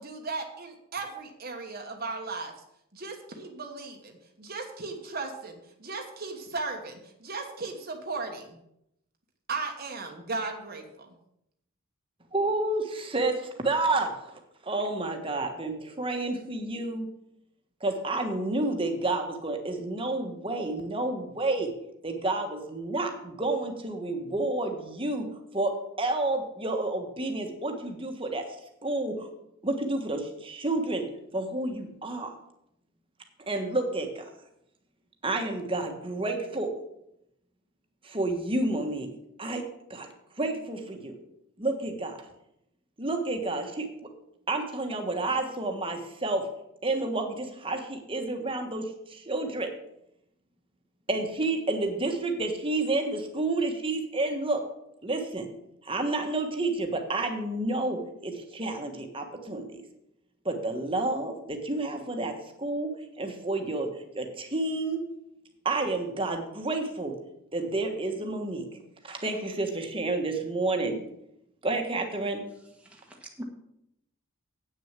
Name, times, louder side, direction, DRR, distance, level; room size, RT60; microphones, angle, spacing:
voice 1, 0.0-2.5 2.9-8.6 9.5-11.1, right 3 dB, 45° right, 2 dB, 1.2 m, -36 dB
voice 2, 12.3-17.1 17.8-21.7 22.0-25.3 25.5-28.4 28.8-29.3 29.6-31.1 31.3-32.3 33.5-34.3 35.2-36.7 38.0-39.1 39.4-40.1 40.3-41.2 41.6-42.2 43.0-44.1 44.5-46.5 46.8-49.7 51.1-54.6 55.0-55.5 55.8-59.8 60.4-65.1 65.6-67.2 67.5-68.7 69.0-71.0 71.6-72.4, right 2 dB, 25° right, 4 dB, 1.4 m, -30 dB
voice 3, 72.8-73.4, right 1 dB, 5° right, -1 dB, 1.3 m, -43 dB
8.9 x 6.4 x 7.4 m, 0.79 s
head